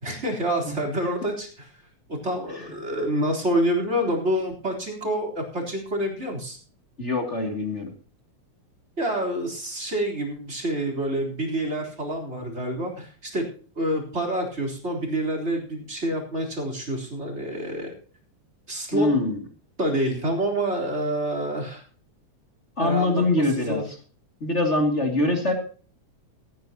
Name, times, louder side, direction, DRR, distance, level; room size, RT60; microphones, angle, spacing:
voice 1, 0.0-1.7 2.1-6.6 9.0-13.4 13.8-17.9 18.7-19.1 19.8-21.8 22.8-23.8, right 1 dB, 20° right, 2 dB, 3.9 m, -27 dB
voice 2, 7.0-7.9 18.9-19.4 22.8-23.8 24.4-25.5, left 2 dB, 25° left, 3 dB, 2.7 m, -23 dB
16.5 x 15.0 x 2.9 m, 0.42 s
omnidirectional pair, 3.4 m